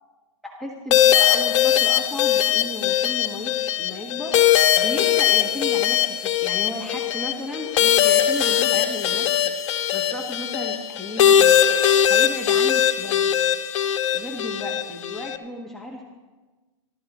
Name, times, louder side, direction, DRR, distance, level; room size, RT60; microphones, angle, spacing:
voice 1, 0.4-9.5 9.9-11.5 12.1-13.3 14.1-16.0, left 1 dB, ahead, -2 dB, 1.3 m, -34 dB
sound 1, 0.9-15.4, left 10 dB, 65° left, 1.0 m, -20 dB
24.5 x 13.0 x 3.0 m, 1.2 s
hypercardioid pair, 140°, 17 cm